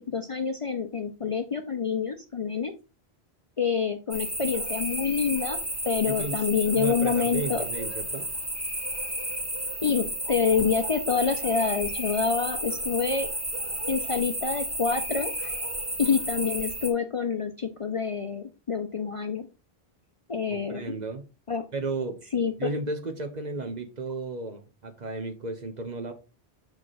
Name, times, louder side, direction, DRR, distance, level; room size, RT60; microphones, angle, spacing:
voice 1, 0.0-2.7 3.6-5.6 5.9-7.6 9.8-13.3 13.9-15.5 16.0-19.5 20.3-20.8 21.5-21.6 22.3-22.7, left 6 dB, 40° left, 0.6 m, -27 dB
sound 1, 4.1-16.9, right 1 dB, 15° right, 1.5 m, -32 dB
voice 2, 6.1-6.4 6.7-8.3 20.5-21.2 21.7-22.2 22.6-26.1, right 3 dB, 45° right, 1.0 m, -34 dB
6.5 x 4.7 x 4.1 m
omnidirectional pair, 1.1 m